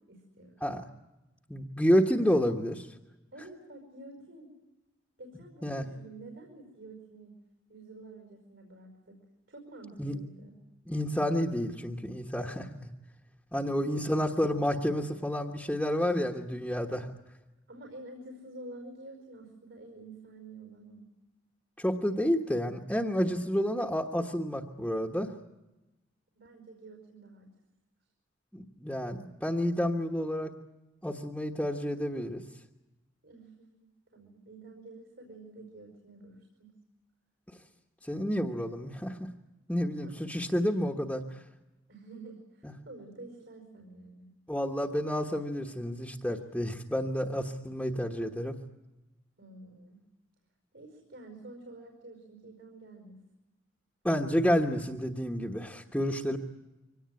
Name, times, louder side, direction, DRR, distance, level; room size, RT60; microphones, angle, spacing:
voice 1, 0.1-0.6 3.3-4.6 5.2-7.4 7.7-9.2 9.5-10.6 17.7-21.1 26.3-27.5 33.2-36.7 40.0-40.2 41.9-44.3 49.4-50.0 50.7-53.2, right 2 dB, 70° right, 3 dB, 5.2 m, -49 dB
voice 2, 1.5-2.9 5.6-5.8 10.0-10.2 10.9-12.9 13.5-17.1 21.8-25.3 28.5-30.5 31.0-32.4 38.0-39.3 39.7-41.4 44.5-48.5 54.0-56.4, equal, 5° left, 0 dB, 1.3 m, -30 dB
24.5 x 18.5 x 9.6 m, 1.0 s
head